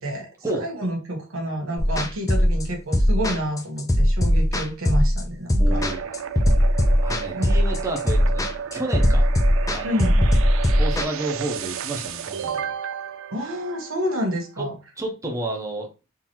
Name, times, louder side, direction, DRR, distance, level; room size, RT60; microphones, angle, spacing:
voice 1, 0.6-5.8 7.3-7.5 9.8-10.2 13.3-14.8, equal, 90° right, 1.2 m, -28 dB
sound 1, 1.8-11.0, equal, 15° left, 0.4 m, -19 dB
voice 2, 5.6-6.2 7.0-9.3 9.7-10.1 10.8-12.7 15.0-15.9, right 2 dB, 15° right, 0.7 m, -30 dB
sound 2, 5.7-14.4, right 8 dB, 70° right, 0.4 m, -33 dB
3.8 x 2.7 x 3.0 m
head